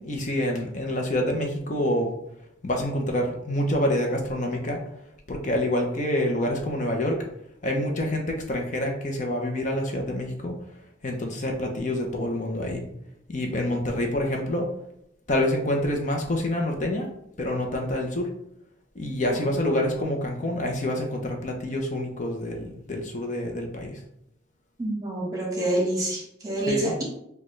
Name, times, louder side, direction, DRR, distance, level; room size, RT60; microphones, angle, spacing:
voice 1, 0.0-2.1 2.6-4.8 5.3-7.2 7.6-10.5 11.0-12.8 13.3-14.7 15.3-17.1 17.4-18.3 19.0-24.0 26.7-26.9, left 1 dB, 40° left, 1 dB, 0.7 m, -27 dB
voice 2, 24.8-27.0, right 2 dB, 20° right, -2 dB, 1.2 m, -27 dB
6.4 x 2.3 x 3.1 m, 0.79 s
head